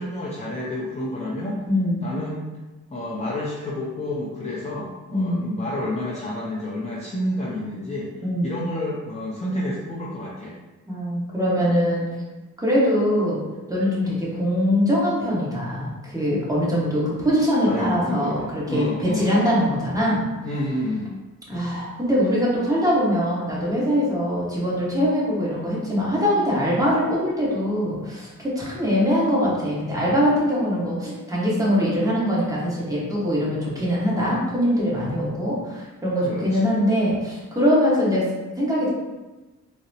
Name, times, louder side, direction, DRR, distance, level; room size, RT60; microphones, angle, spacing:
voice 1, 0.0-1.6 2.0-2.4 2.9-8.1 8.4-10.6 11.6-11.7 17.7-19.3 20.4-21.1 36.2-36.8, left 1 dB, 20° left, -6 dB, 0.5 m, -29 dB
voice 2, 1.7-2.1 5.1-5.4 8.2-8.6 10.9-12.1 12.6-13.4 13.7-20.2 21.5-38.3 38.6-38.9, equal, 10° right, -7 dB, 1.3 m, -22 dB
3.9 x 2.1 x 2.7 m, 1.2 s
cardioid pair, 75°, 33 cm